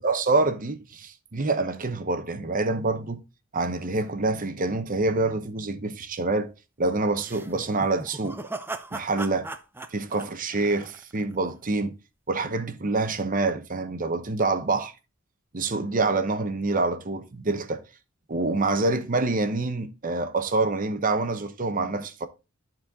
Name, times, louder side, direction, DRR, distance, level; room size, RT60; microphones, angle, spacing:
voice 1, 0.0-3.2 3.5-6.5 6.8-8.4 8.9-9.5 9.9-11.9 12.3-14.9 15.5-17.8 18.3-22.3, right 3 dB, 40° right, 0.9 m, -26 dB
sound 1, 7.2-11.4, right 2 dB, 10° right, 0.5 m, -38 dB
12.0 x 4.4 x 3.6 m
head